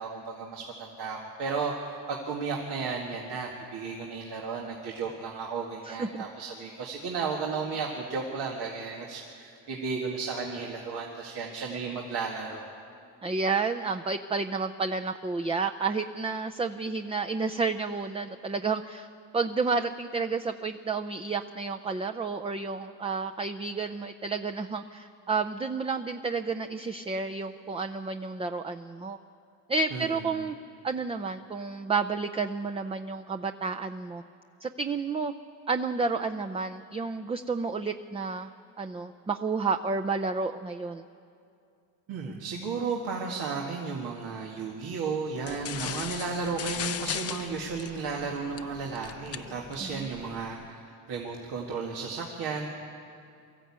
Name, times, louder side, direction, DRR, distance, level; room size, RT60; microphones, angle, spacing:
voice 1, 0.0-12.7 29.9-30.2 42.1-52.7, right 5 dB, 85° right, -1 dB, 2.1 m, -34 dB
voice 2, 5.8-6.2 13.2-19.1 19.3-29.2 29.7-30.6 30.8-34.2 34.6-35.3 35.7-38.5 38.8-41.0 49.8-50.1, right 4 dB, 15° right, 6 dB, 0.5 m, -31 dB
sound 1, 45.4-50.7, left 9 dB, 40° left, 0.6 m, -38 dB
24.0 x 14.0 x 8.7 m, 2.5 s
cardioid pair, 115°, 38 cm